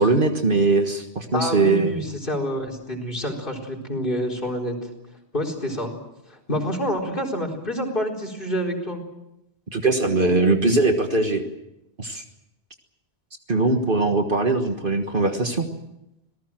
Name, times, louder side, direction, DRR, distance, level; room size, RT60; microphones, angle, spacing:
voice 1, 0.0-1.9 9.7-11.4 12.0-12.2 13.5-15.7, right 3 dB, 55° right, 5 dB, 1.7 m, -21 dB
voice 2, 1.3-4.8 5.3-5.9 6.3-9.0, equal, 55° left, 4 dB, 4.5 m, -27 dB
26.0 x 18.5 x 7.6 m, 0.87 s
omnidirectional pair, 1.1 m